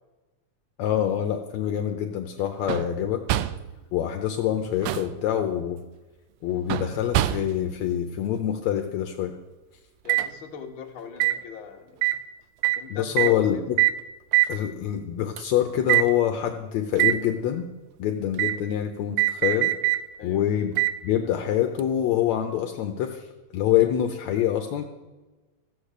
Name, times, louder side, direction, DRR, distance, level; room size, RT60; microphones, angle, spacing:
voice 1, 0.8-3.2 3.9-5.8 6.4-9.3 12.9-13.8 14.5-17.7 18.0-19.7 20.2-20.7 21.0-23.3 23.5-24.9, left 10 dB, 75° left, 5 dB, 2.0 m, -25 dB
sound 1, 2.7-3.0 3.3-3.7 4.6-5.2 6.7-7.7 10.1-10.3 11.2-11.4 12.0-12.2 12.6-12.8 13.2-13.4 13.8-14.0 14.3-14.6 15.4-15.5 15.9-16.1 17.0-17.2 18.4-18.6 19.2-20.0 20.8-21.0 21.8-21.9, right 16 dB, 80° right, 1.5 m, -23 dB
voice 2, 10.0-12.1 12.8-13.6 20.2-20.4, left 6 dB, 50° left, 2 dB, 1.9 m, -39 dB
15.0 x 8.1 x 6.6 m, 1.2 s
omnidirectional pair, 3.4 m